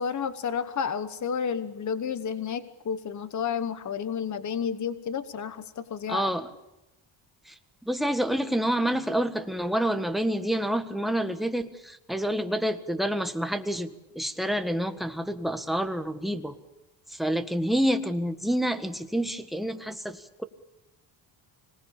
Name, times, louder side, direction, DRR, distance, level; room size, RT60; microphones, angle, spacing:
voice 1, 0.0-6.3, left 7 dB, 35° left, 12 dB, 1.2 m, -31 dB
voice 2, 6.1-6.5 7.4-16.6 17.1-20.4, equal, ahead, 7 dB, 1.5 m, -28 dB
25.5 x 19.0 x 8.7 m, 0.96 s
cardioid pair, 120°, 47 cm